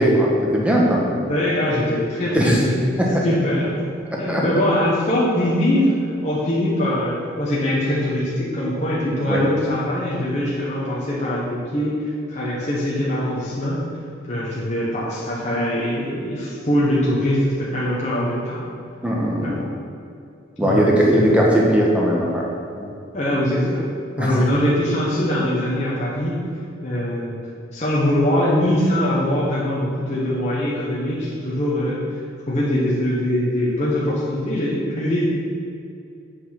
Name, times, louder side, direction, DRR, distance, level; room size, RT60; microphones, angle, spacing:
voice 1, 0.0-1.1 2.3-2.6 3.0-3.2 4.1-4.4 9.3-9.4 19.0-19.6 20.6-22.5 24.2-24.5, equal, 5° right, -3 dB, 1.4 m, -18 dB
voice 2, 1.3-3.8 4.2-5.9 6.2-13.8 14.3-18.7 19.4-19.7 20.6-20.8 21.1-21.2 23.1-23.9 24.2-26.4 26.8-27.4 27.7-32.0 32.5-35.3, left 1 dB, 35° left, -7 dB, 1.4 m, -22 dB
8.1 x 5.5 x 6.0 m, 2.5 s
head